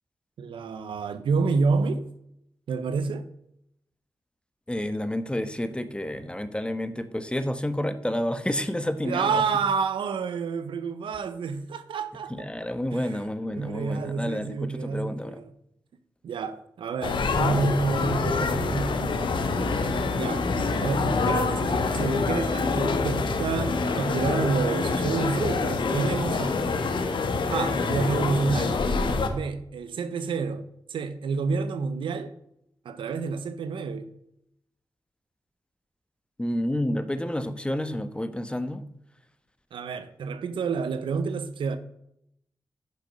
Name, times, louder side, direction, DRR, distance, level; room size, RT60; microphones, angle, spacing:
voice 1, 0.4-2.1 2.7-3.3 9.0-12.5 12.9-15.5 16.2-20.5 20.8-26.6 27.5-28.9 29.3-30.6 30.9-32.3 32.8-34.1 39.7-41.8, right 4 dB, 90° right, 0.8 m, -29 dB
voice 2, 4.7-9.4 12.3-15.4 36.4-38.8, left 1 dB, 10° left, 1.2 m, -30 dB
sound 1, 17.0-29.3, left 3 dB, 80° left, 1.2 m, -26 dB
9.9 x 6.5 x 5.4 m
cardioid pair, 50°, 8 cm